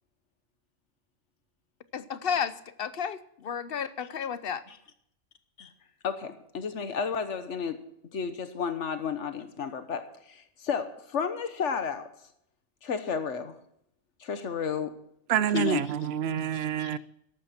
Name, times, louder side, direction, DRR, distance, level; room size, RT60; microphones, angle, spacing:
voice 1, 1.9-4.6, left 7 dB, 60° left, 0.9 m, -32 dB
voice 2, 6.0-7.8 8.1-12.1 12.8-13.6 14.2-14.9 15.5-15.8 16.5-16.9, left 6 dB, 80° left, 1.4 m, -32 dB
voice 3, 15.3-17.0, right 9 dB, 65° right, 0.8 m, -27 dB
14.0 x 11.5 x 4.3 m
omnidirectional pair, 1.2 m